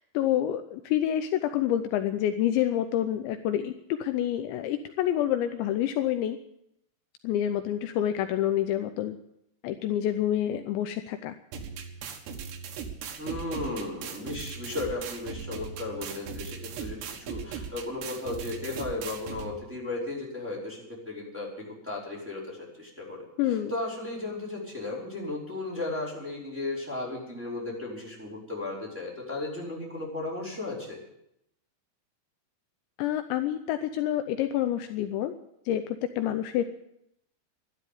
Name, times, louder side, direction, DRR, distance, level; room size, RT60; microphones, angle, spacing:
voice 1, 0.1-3.7 4.0-6.4 7.2-9.2 9.6-11.3 23.4-23.7 33.0-35.3 35.7-36.6, left 11 dB, 80° left, 8 dB, 2.9 m, -28 dB
sound 1, 11.5-19.5, right 6 dB, 70° right, 3.5 m, -39 dB
voice 2, 13.2-21.5 21.8-23.2 23.7-31.0, left 2 dB, 5° right, -5 dB, 4.4 m, -35 dB
12.5 x 12.0 x 8.5 m, 0.79 s
omnidirectional pair, 5.4 m